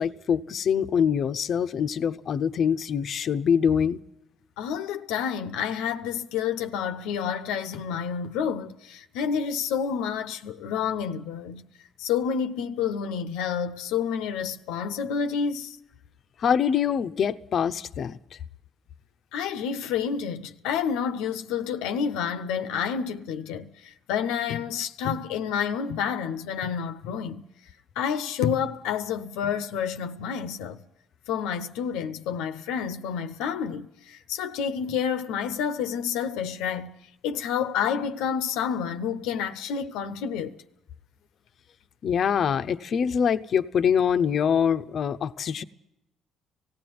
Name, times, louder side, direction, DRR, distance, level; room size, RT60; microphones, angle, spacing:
voice 1, 0.0-4.0 16.4-18.2 42.0-45.6, left 7 dB, 55° left, 0.7 m, -24 dB
voice 2, 4.6-11.7 12.0-15.8 19.3-27.4 28.0-30.8 31.3-37.0 37.2-40.5, left 7 dB, 85° left, 0.8 m, -29 dB
18.5 x 15.5 x 9.4 m
supercardioid pair, 75°, 0 cm